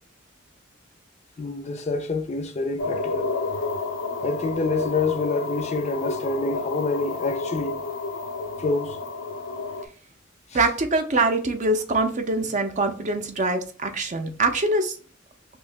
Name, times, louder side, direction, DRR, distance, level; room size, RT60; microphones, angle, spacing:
voice 1, 1.4-3.4 4.2-7.8 8.6-9.0 10.5-10.6, left 3 dB, 35° left, 0.4 m, -27 dB
sound 1, 2.8-9.8, left 3 dB, 90° left, 0.5 m, -30 dB
voice 2, 10.5-15.0, right 2 dB, 40° right, 0.5 m, -24 dB
3.1 x 2.7 x 3.3 m
head